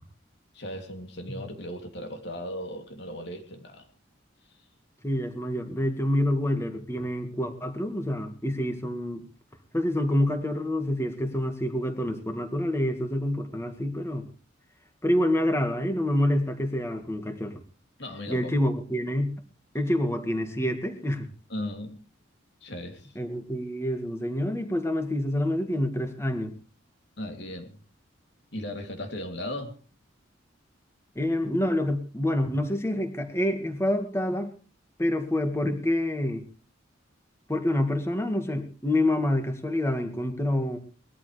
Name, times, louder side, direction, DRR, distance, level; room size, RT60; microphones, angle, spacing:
voice 1, 0.5-3.9 4.5-4.6 18.0-18.5 21.5-22.0 22.6-23.1 27.2-27.8 28.5-29.8, left 1 dB, 60° left, 4 dB, 3.0 m, -37 dB
voice 2, 5.0-9.2 9.7-14.3 15.0-17.6 18.3-19.3 19.7-21.3 23.2-26.6 31.2-34.5 35.0-36.5 37.5-40.8, left 1 dB, 15° left, 7 dB, 1.9 m, -27 dB
21.0 x 13.5 x 3.4 m, 0.37 s
head